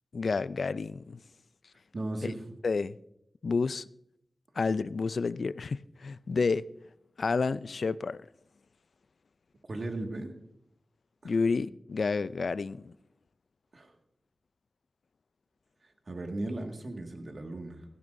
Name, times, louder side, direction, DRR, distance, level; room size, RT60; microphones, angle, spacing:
voice 1, 0.1-1.2 2.2-2.3 2.6-3.0 3.4-3.9 4.6-6.7 7.2-8.2 11.2-12.9, left 4 dB, 75° left, 0.3 m, -30 dB
voice 2, 1.9-2.4 9.7-10.3 11.2-11.3 13.7-13.9 16.1-17.8, right 2 dB, 55° right, 1.8 m, -36 dB
16.5 x 14.0 x 2.6 m
wide cardioid pair, 75°, 0 cm